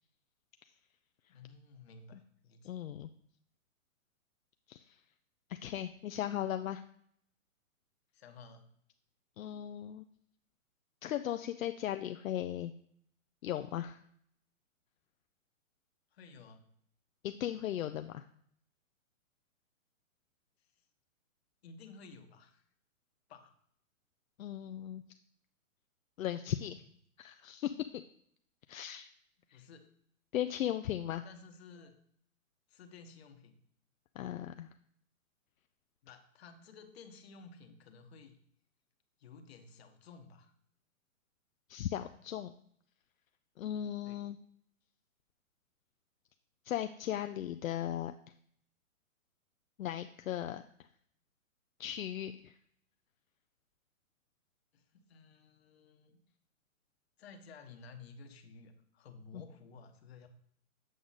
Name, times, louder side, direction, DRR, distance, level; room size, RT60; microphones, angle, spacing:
voice 1, 1.3-2.8 6.3-6.4 8.1-8.7 16.1-16.6 21.6-22.6 23.3-23.5 29.5-29.9 31.2-32.0 32.7-33.6 36.0-38.4 39.2-40.5 44.1-44.3 54.7-56.2 57.2-60.3, left 4 dB, 50° left, 6 dB, 1.1 m, -54 dB
voice 2, 2.6-3.1 4.7-5.0 5.5-6.8 9.4-10.0 11.0-12.7 13.4-14.0 17.2-18.2 24.4-25.0 26.2-26.8 27.2-27.8 28.7-29.1 29.5-29.6 30.3-31.2 34.2-34.7 41.7-42.5 43.6-44.4 46.6-48.1 49.8-50.6 51.8-52.6 59.3-59.4, left 11 dB, 70° left, 8 dB, 0.5 m, -37 dB
7.8 x 5.0 x 4.0 m, 0.66 s
hypercardioid pair, 150°, 41 cm